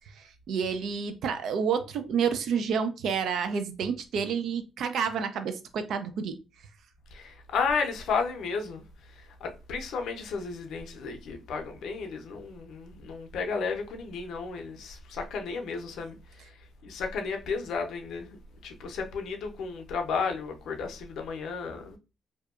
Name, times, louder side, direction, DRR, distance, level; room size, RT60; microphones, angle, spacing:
voice 1, 0.1-6.4, right 6 dB, 75° right, 0.4 m, -29 dB
voice 2, 7.1-16.5 16.8-18.4 18.6-22.0, left 5 dB, 75° left, 0.6 m, -33 dB
2.7 x 2.2 x 2.3 m
cardioid pair, 90°, 0 cm